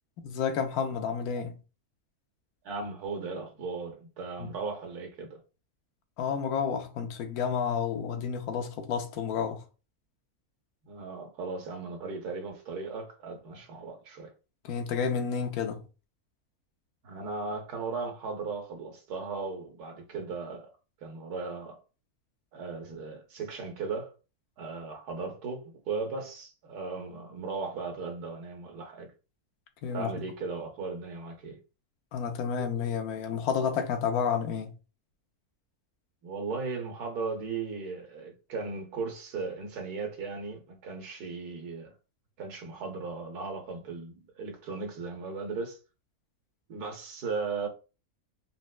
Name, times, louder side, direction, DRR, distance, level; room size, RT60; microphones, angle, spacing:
voice 1, 0.2-1.5 4.4-4.5 6.2-9.6 14.6-15.8 29.8-30.1 32.1-34.7, left 7 dB, 80° left, 1.1 m, -30 dB
voice 2, 2.6-5.4 10.8-14.3 17.0-20.7 21.0-21.8 22.5-24.1 24.6-29.1 29.9-31.6 36.2-41.9 42.4-45.8 46.7-47.7, right 4 dB, 90° right, 1.4 m, -37 dB
4.0 x 2.2 x 2.3 m
omnidirectional pair, 1.6 m